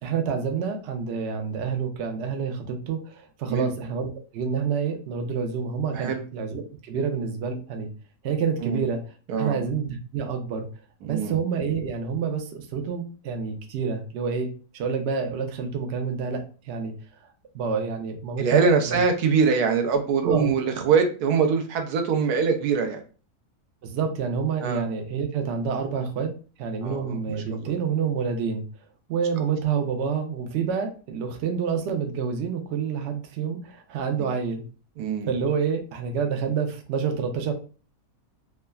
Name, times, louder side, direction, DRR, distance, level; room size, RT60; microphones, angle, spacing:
voice 1, 0.0-7.9 8.2-9.0 9.4-10.7 11.1-14.5 14.7-16.9 17.5-19.0 20.2-20.5 23.8-26.3 26.6-28.6 29.1-34.6 35.3-37.5, right 6 dB, 65° right, 4 dB, 0.7 m, -28 dB
voice 2, 9.3-9.6 11.0-11.4 18.4-23.0 24.6-24.9 26.8-27.7 34.2-34.3 35.0-35.3, right 5 dB, 85° right, 4 dB, 1.2 m, -23 dB
3.4 x 2.1 x 2.3 m, 0.36 s
omnidirectional pair, 1.6 m